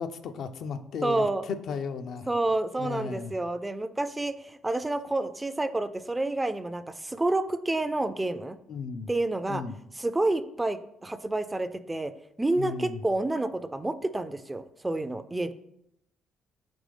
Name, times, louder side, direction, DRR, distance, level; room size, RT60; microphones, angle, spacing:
voice 1, 0.0-2.3 2.8-3.3 8.7-9.1 9.5-9.8 12.6-13.0, left 5 dB, 65° left, 8 dB, 0.4 m, -35 dB
voice 2, 1.0-1.4 2.3-8.6 9.1-9.6 10.0-12.1 12.4-15.5, right 2 dB, 15° right, 11 dB, 0.3 m, -29 dB
5.2 x 3.0 x 3.3 m, 0.78 s
supercardioid pair, 60°, 0 cm